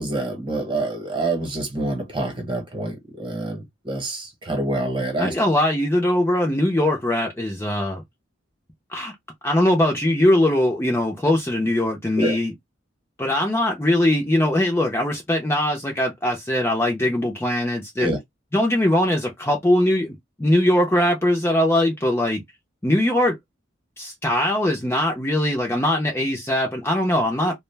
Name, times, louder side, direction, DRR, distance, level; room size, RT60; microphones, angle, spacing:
voice 1, 0.0-5.3 12.2-12.4 18.0-18.2 27.4-27.5, right 2 dB, 25° right, 1.0 m, -26 dB
voice 2, 5.2-8.0 8.9-9.1 9.4-12.5 13.2-18.1 18.5-22.4 22.8-23.4 24.0-27.5, left 1 dB, 15° left, 0.5 m, -21 dB
2.4 x 2.1 x 3.2 m
head